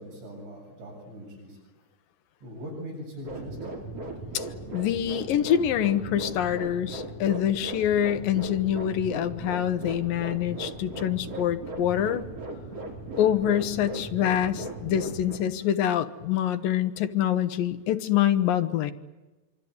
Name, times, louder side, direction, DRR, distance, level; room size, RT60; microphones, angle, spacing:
voice 1, 0.0-1.6 2.4-4.7 16.7-16.8 18.1-18.2, equal, 80° right, -1 dB, 10.5 m, -43 dB
sound 1, 3.2-15.4, right 2 dB, 35° right, 5.6 m, -38 dB
voice 2, 4.7-12.2 13.2-18.9, left 10 dB, 70° left, 9 dB, 2.3 m, -25 dB
25.0 x 24.5 x 9.6 m, 1.1 s
omnidirectional pair, 4.9 m